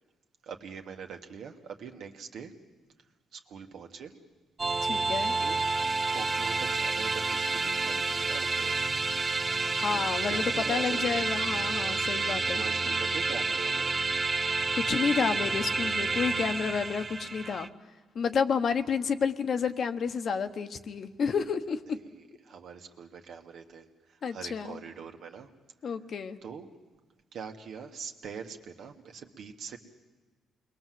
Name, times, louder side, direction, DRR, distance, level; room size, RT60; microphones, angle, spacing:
voice 1, 0.4-2.5 3.3-4.1 5.4-5.6 6.1-8.8 9.6-11.2 12.5-13.9 22.4-25.5 26.4-26.7 27.3-29.8, right 6 dB, 70° right, 4 dB, 1.9 m, -43 dB
sound 1, 4.6-17.7, right 3 dB, 30° right, 0.8 m, -29 dB
voice 2, 4.8-5.3 9.8-12.6 14.5-17.7 18.1-22.0 24.2-24.8 25.8-26.4, left 6 dB, 55° left, 9 dB, 1.2 m, -30 dB
28.5 x 21.5 x 7.8 m, 1.4 s
cardioid pair, 90°, 0 cm